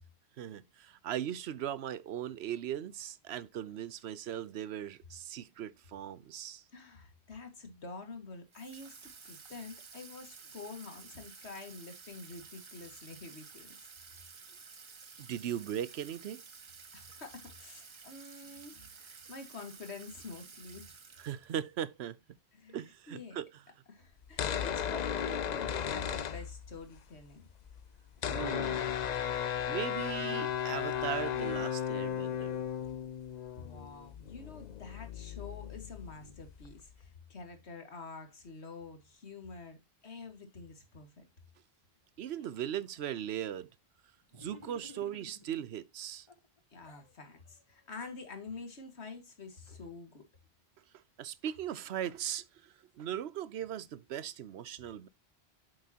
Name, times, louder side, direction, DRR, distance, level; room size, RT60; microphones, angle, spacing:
voice 1, 0.4-6.6 15.2-16.4 21.2-22.2 22.7-23.5 28.3-28.9 29.7-32.6 42.2-43.7 44.3-46.3 51.2-55.1, right 10 dB, 80° right, 0.9 m, -38 dB
voice 2, 6.7-13.9 16.9-20.9 22.5-22.8 23.1-23.4 23.9-27.4 33.6-41.3 46.7-50.3, left 4 dB, 90° left, 2.1 m, -47 dB
Water tap faucet / Sink (filling or washing), 8.5-21.7, right 5 dB, 35° right, 0.6 m, -53 dB
sound 1, 24.2-27.0 27.2-27.3 27.5-36.9, left 9 dB, 50° left, 0.6 m, -35 dB
sound 2, 44.3-45.7 46.3-47.1, left 4 dB, 30° left, 0.9 m, -53 dB
7.9 x 7.7 x 2.8 m
omnidirectional pair, 1.1 m